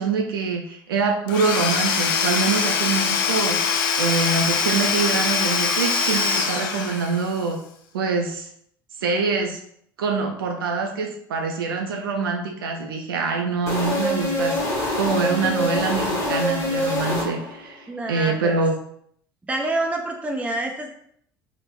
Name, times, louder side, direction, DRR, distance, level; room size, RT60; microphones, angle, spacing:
voice 1, 0.0-7.6 7.9-8.5 9.0-9.6 10.0-14.6 15.0-18.7, right 4 dB, 80° right, 3 dB, 0.4 m, -25 dB
Domestic sounds home sounds / Tools, 1.3-7.4, left 6 dB, 70° left, 0.4 m, -23 dB
sound 1, 13.7-17.7, left 1 dB, 25° left, 1.2 m, -25 dB
voice 2, 17.9-18.6 19.5-20.9, right 2 dB, 10° right, 1 dB, 0.5 m, -27 dB
3.0 x 2.1 x 3.1 m, 0.68 s
hypercardioid pair, 65°, 12 cm